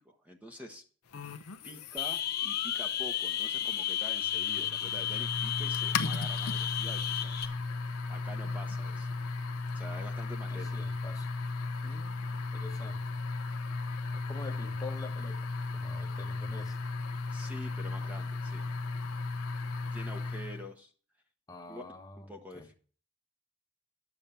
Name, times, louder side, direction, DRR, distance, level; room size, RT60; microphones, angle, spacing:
voice 1, 0.0-0.8 1.2-1.3 1.6-7.5 7.8-9.1 9.7-10.9 17.3-18.7 19.9-20.9 21.7-21.8 22.1-22.7, equal, 5° right, 0.9 m, -47 dB
sound 1, 1.1-20.7, left 3 dB, 85° left, 0.8 m, -36 dB
sound 2, 2.0-7.4, left 10 dB, 45° left, 1.0 m, -33 dB
voice 2, 10.5-11.3 11.8-13.0 14.1-16.9 21.5-22.7, left 3 dB, 15° left, 1.0 m, -47 dB
11.5 x 7.3 x 5.6 m
head